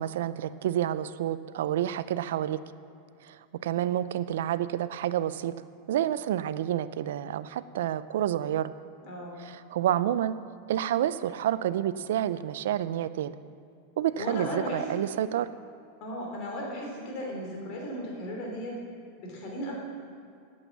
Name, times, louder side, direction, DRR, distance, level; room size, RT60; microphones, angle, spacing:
voice 1, 0.0-2.6 3.3-3.4 3.6-5.5 5.9-8.7 9.4-10.3 10.7-13.3 14.0-15.5, right 11 dB, 80° right, 15 dB, 0.4 m, -29 dB
voice 2, 9.0-9.4 14.1-14.9 16.0-18.7 19.2-19.7, equal, 45° left, -1 dB, 3.2 m, -36 dB
8.9 x 7.8 x 7.2 m, 2.4 s
supercardioid pair, 130°, 0 cm